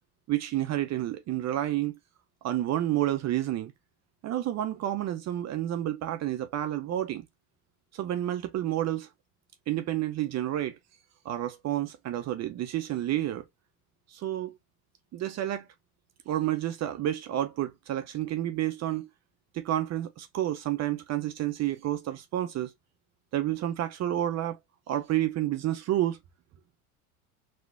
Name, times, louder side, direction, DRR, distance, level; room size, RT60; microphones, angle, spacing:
voice 1, 0.3-2.0 2.4-3.7 4.2-7.2 7.9-9.1 9.7-10.8 11.2-13.5 14.1-14.5 15.1-15.7 16.3-19.1 19.5-22.7 23.3-24.6 24.9-26.2, right 13 dB, 35° right, 0.5 m, -30 dB
4.0 x 2.2 x 2.4 m
hypercardioid pair, 75°, 45 cm